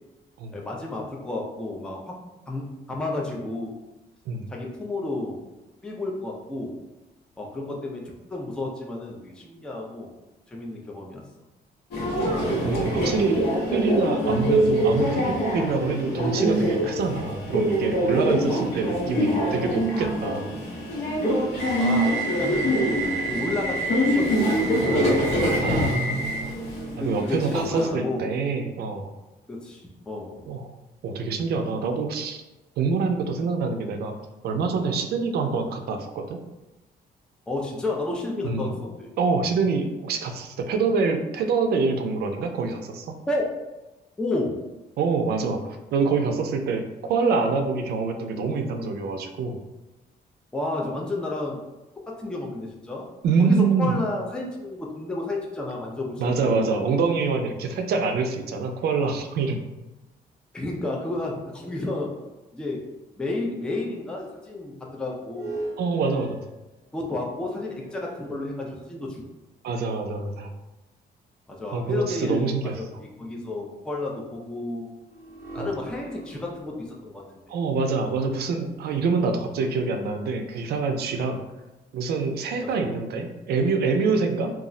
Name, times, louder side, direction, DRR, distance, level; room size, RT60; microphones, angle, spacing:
voice 1, 0.5-2.2 2.5-3.7 4.5-5.4 5.8-6.8 7.4-10.1 10.5-11.2 21.8-22.8 23.3-25.1 26.1-26.3 27.0-28.2 29.5-30.4 37.5-39.1 43.3-43.6 44.2-44.6 50.5-51.6 52.1-53.1 53.4-56.1 56.4-56.8 60.5-62.1 62.5-62.8 63.2-65.6 66.9-69.2 71.5-72.5 72.8-72.9 73.2-74.9 75.5-77.2 82.7-82.9, left 2 dB, 5° left, -1 dB, 0.3 m, -31 dB
Subway metro underground, 11.9-27.9, right 1 dB, 85° left, 0.9 m, -24 dB
voice 2, 12.6-20.5 24.9-25.2 25.6-26.5 27.0-29.1 30.5-30.7 31.0-32.4 32.8-34.1 34.4-36.4 38.4-38.7 39.2-43.2 45.0-49.6 53.2-54.0 56.2-59.6 65.8-66.4 69.6-70.5 71.7-72.7 75.6-75.7 77.5-81.4 81.9-84.5, right 4 dB, 70° right, 5 dB, 0.4 m, -25 dB
sound 1, 65.2-69.0 69.7-69.8 75.0-79.3, right 2 dB, 15° right, 0.8 m, -41 dB
2.3 x 2.0 x 3.6 m, 1.0 s
cardioid pair, 150°, 17 cm